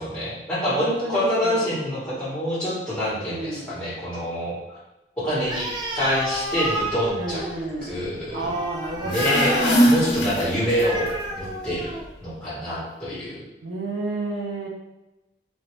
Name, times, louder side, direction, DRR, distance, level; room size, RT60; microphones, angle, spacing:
voice 1, 0.0-4.6 5.2-5.7 5.9-7.4 7.8-8.5 9.0-9.6 9.8-11.9 12.2-13.4, equal, 5° left, -9 dB, 1.3 m, -26 dB
voice 2, 0.6-2.0 3.2-3.8 7.2-7.9 8.3-10.4 13.6-14.7, right 2 dB, 85° right, -1 dB, 0.7 m, -31 dB
Animal, 5.4-12.2, right 1 dB, 25° right, 0.3 m, -31 dB
sound 1, 8.9-11.1, equal, 75° left, 0.8 m, -22 dB
3.4 x 2.7 x 3.1 m, 1.0 s
head